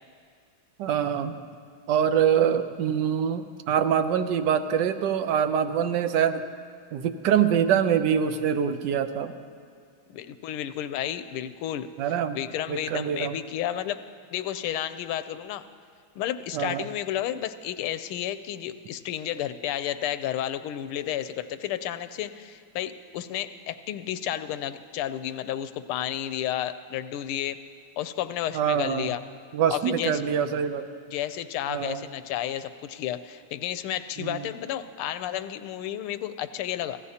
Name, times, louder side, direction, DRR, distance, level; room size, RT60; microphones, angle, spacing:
voice 1, 0.8-1.4 1.9-6.4 6.9-9.3 12.0-12.4 12.7-13.4 16.5-16.9 28.5-29.1 29.5-30.9 31.7-32.0 34.2-34.5, right 8 dB, 70° right, 9 dB, 1.2 m, -24 dB
voice 2, 10.1-11.9 12.3-14.0 14.3-15.6 16.2-27.6 28.0-29.2 29.7-30.2 31.1-37.0, left 11 dB, 85° left, 12 dB, 1.5 m, -32 dB
25.5 x 15.5 x 2.8 m, 2.2 s
omnidirectional pair, 2.3 m